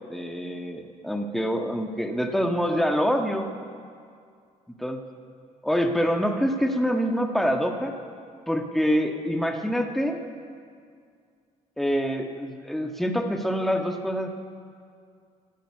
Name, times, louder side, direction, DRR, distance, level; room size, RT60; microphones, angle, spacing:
voice 1, 0.1-3.5 4.7-5.0 5.6-7.9 8.5-10.2 11.8-14.3, equal, ahead, 4 dB, 1.4 m, -26 dB
13.5 x 9.0 x 9.8 m, 2.2 s
hypercardioid pair, 50°, 19 cm